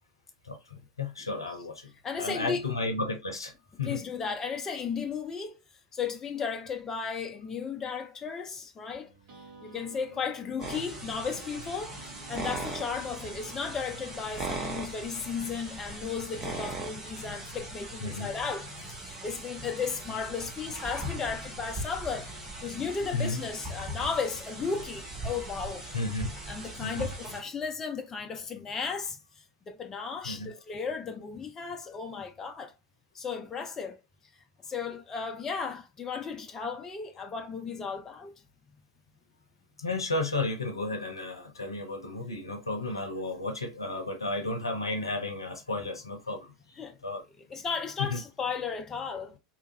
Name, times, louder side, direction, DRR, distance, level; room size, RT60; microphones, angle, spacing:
voice 1, 0.4-1.9 2.2-3.5 3.8-4.0 18.0-18.3 23.1-23.4 25.9-26.3 26.8-27.1 30.2-30.5 39.8-46.5 47.0-47.2 48.0-48.2, left 2 dB, 80° left, 0.6 m, -33 dB
voice 2, 2.0-2.7 3.8-9.1 9.6-12.0 12.3-22.3 22.6-25.9 26.5-32.7 33.1-34.0 34.4-38.3 46.8-47.0 47.4-49.4, left 5 dB, 20° left, 0.5 m, -35 dB
sound 1, 8.9-15.7, right 3 dB, 45° right, 1.4 m, -53 dB
sound 2, 10.6-27.4, right 1 dB, 25° right, 1.0 m, -39 dB
2.8 x 2.5 x 2.6 m
figure-of-eight pair, 85°, 2 cm